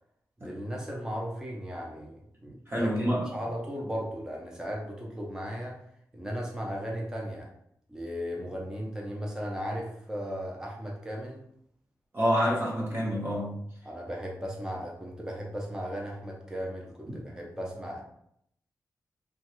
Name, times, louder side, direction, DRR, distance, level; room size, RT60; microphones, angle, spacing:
voice 1, 0.4-5.8 6.1-7.5 7.9-11.4 13.8-18.0, equal, 10° right, -2 dB, 0.6 m, -36 dB
voice 2, 2.7-3.3 12.1-13.6, equal, 35° right, -5 dB, 0.9 m, -27 dB
3.1 x 2.3 x 2.9 m, 0.72 s
wide cardioid pair, 115°, 7 cm